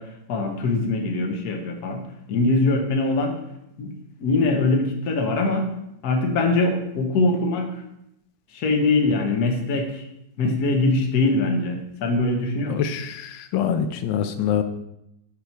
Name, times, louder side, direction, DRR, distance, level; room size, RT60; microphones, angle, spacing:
voice 1, 0.0-2.0 2.3-3.4 3.8-3.9 4.2-5.7 6.0-7.8 8.5-10.1 10.4-12.8, left 2 dB, 60° left, 3 dB, 1.5 m, -22 dB
voice 2, 12.7-14.6, left 8 dB, 90° left, 9 dB, 1.4 m, -25 dB
6.7 x 5.6 x 4.5 m, 0.81 s
omnidirectional pair, 2.0 m